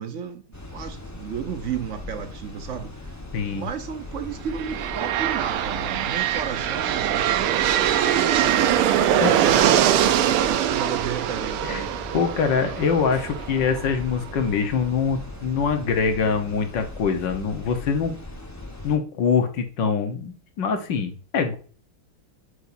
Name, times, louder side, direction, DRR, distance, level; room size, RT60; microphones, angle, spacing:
voice 1, 0.0-3.2 3.5-11.9, right 7 dB, 65° right, 0.7 m, -33 dB
sound 1, 0.5-19.0, left 2 dB, 20° left, 0.4 m, -39 dB
voice 2, 3.3-3.7 9.2-9.3 11.7-11.8 12.1-18.1 18.8-21.6, left 6 dB, 60° left, 1.7 m, -24 dB
sound 2, 4.5-14.3, right 10 dB, 90° right, 1.6 m, -22 dB
8.1 x 6.4 x 2.6 m
omnidirectional pair, 2.3 m